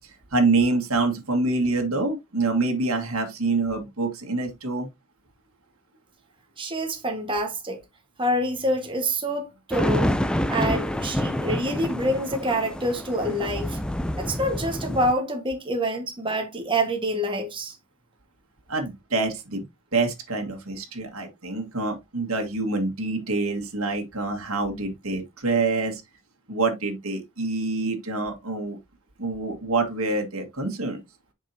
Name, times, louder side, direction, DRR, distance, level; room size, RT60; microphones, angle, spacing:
voice 1, 0.3-4.9 18.7-19.6 19.9-26.0 26.5-28.8 29.2-31.0, right 3 dB, 80° right, 1.8 m, -26 dB
voice 2, 6.6-7.8 8.2-10.2 10.5-13.8 14.2-17.8, right 1 dB, 25° right, 1.6 m, -26 dB
sound 1, 9.7-15.1, equal, 5° left, 0.4 m, -27 dB
7.4 x 5.4 x 2.8 m
head